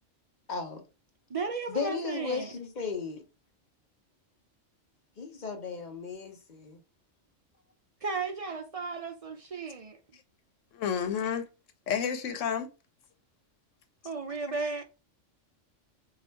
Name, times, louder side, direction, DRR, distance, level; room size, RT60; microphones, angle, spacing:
voice 1, 0.5-0.8 1.7-3.2 5.2-6.8, left 5 dB, 45° left, 0.8 m, -35 dB
voice 2, 1.3-2.5 8.0-10.0 14.0-14.8, right 4 dB, 60° right, 0.3 m, -34 dB
voice 3, 10.7-11.4 11.9-12.7 14.3-14.7, left 7 dB, 75° left, 1.1 m, -31 dB
4.7 x 2.4 x 4.4 m
omnidirectional pair, 1.3 m